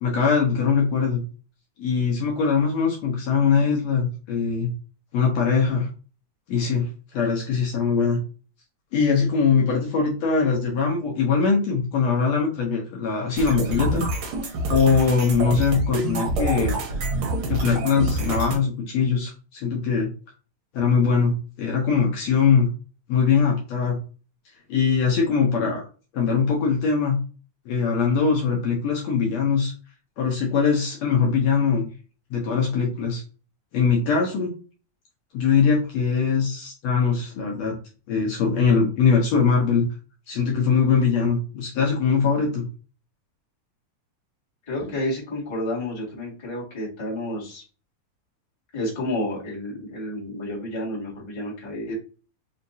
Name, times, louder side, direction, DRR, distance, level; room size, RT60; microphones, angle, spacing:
voice 1, 0.0-1.2 1.8-4.7 5.1-5.9 6.5-6.9 7.1-8.2 8.9-14.0 14.7-16.8 17.5-20.1 20.7-22.7 23.1-24.0 24.7-25.9 26.1-27.2 27.7-29.7 30.2-31.9 32.3-33.2 33.7-34.5 35.3-37.8 38.1-39.9 40.3-42.7, left 5 dB, 70° left, -1 dB, 1.8 m, -22 dB
sound 1, 13.4-18.6, right 2 dB, 60° right, 1.4 m, -26 dB
voice 2, 44.6-47.6 48.7-51.9, left 1 dB, 15° left, -6 dB, 1.0 m, -30 dB
5.4 x 2.8 x 2.7 m, 0.35 s
omnidirectional pair, 3.6 m